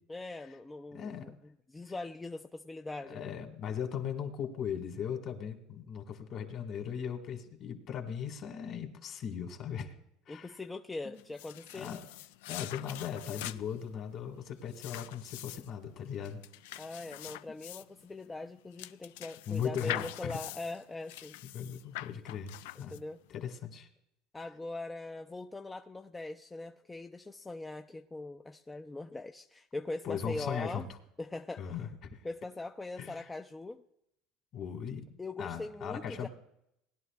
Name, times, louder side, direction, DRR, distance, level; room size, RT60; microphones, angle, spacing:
voice 1, 0.1-3.3 10.3-11.9 16.8-21.4 22.8-23.2 24.3-30.9 31.2-31.7 32.2-33.8 35.2-36.3, left 2 dB, 10° left, 5 dB, 0.4 m, -41 dB
voice 2, 0.9-1.3 3.0-9.9 10.3-10.6 11.0-11.2 11.7-12.0 12.5-16.4 19.5-20.4 21.5-23.0 23.3-23.9 30.0-30.9 31.6-32.2 33.0-33.3 34.5-36.3, left 8 dB, 45° left, 5 dB, 1.9 m, -38 dB
sound 1, 11.2-23.3, left 14 dB, 90° left, 0.4 m, -44 dB
19.5 x 11.0 x 2.4 m, 0.79 s
supercardioid pair, 130°, 0 cm